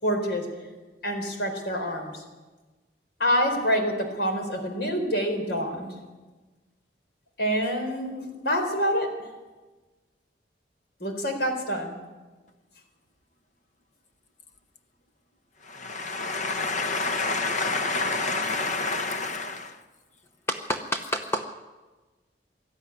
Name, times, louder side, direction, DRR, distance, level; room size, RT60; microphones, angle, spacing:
voice 1, 0.0-0.5 1.0-2.2 3.2-5.9 7.4-9.1 11.0-11.9, equal, 65° left, 4 dB, 4.3 m, -26 dB
voice 2, 15.6-19.8, left 3 dB, 45° left, 8 dB, 1.4 m, -28 dB
voice 3, 20.5-21.5, equal, 15° left, 5 dB, 0.8 m, -29 dB
19.5 x 13.5 x 10.0 m, 1.3 s
head